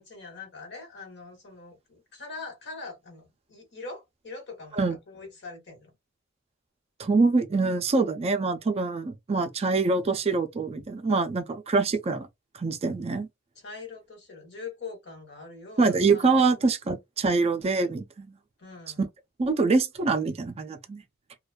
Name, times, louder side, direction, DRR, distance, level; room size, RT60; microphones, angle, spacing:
voice 1, 0.0-6.0 13.5-16.7 18.6-19.0, left 4 dB, 60° left, 1.1 m, -43 dB
voice 2, 7.0-12.3 12.6-13.3 15.8-18.3 19.0-19.1 19.4-21.0, right 3 dB, 30° right, 0.4 m, -25 dB
2.5 x 2.2 x 2.3 m
head